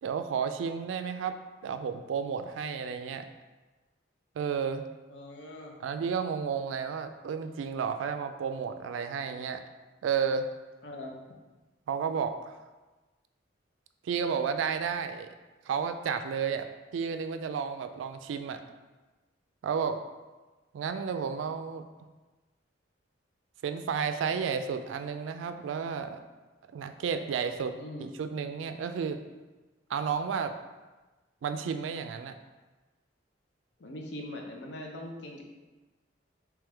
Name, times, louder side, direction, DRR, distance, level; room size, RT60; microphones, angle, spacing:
voice 1, 0.0-3.3 4.4-4.9 5.8-9.6 10.0-10.5 11.9-12.6 14.0-15.3 15.7-16.7 16.9-18.6 19.6-20.0 20.7-22.1 23.6-26.2 26.7-29.2 29.9-30.5 31.4-32.4, right 6 dB, 85° right, 8 dB, 0.3 m, -32 dB
voice 2, 5.1-5.7 10.8-11.4 27.8-28.1 33.8-35.4, left 1 dB, 65° left, 1 dB, 0.6 m, -41 dB
3.5 x 3.0 x 3.3 m, 1.2 s
head